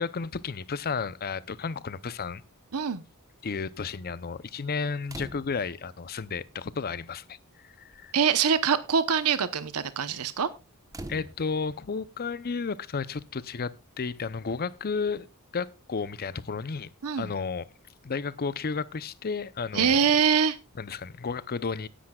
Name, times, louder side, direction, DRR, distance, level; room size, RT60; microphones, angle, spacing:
voice 1, 0.0-2.4 3.4-7.4 7.6-8.1 11.1-15.3 15.5-16.9 17.2-17.6 18.0-20.0 20.8-21.9, left 5 dB, 45° left, 0.6 m, -32 dB
voice 2, 2.7-3.0 8.1-10.5 17.0-17.3 19.7-20.6, right 7 dB, 80° right, 0.9 m, -24 dB
sound 1, 5.1-5.8 6.9-7.0 7.3-7.6 7.9-8.2 10.9-11.8 13.4-13.5, right 1 dB, 15° right, 1.0 m, -43 dB
17.5 x 10.0 x 2.3 m
head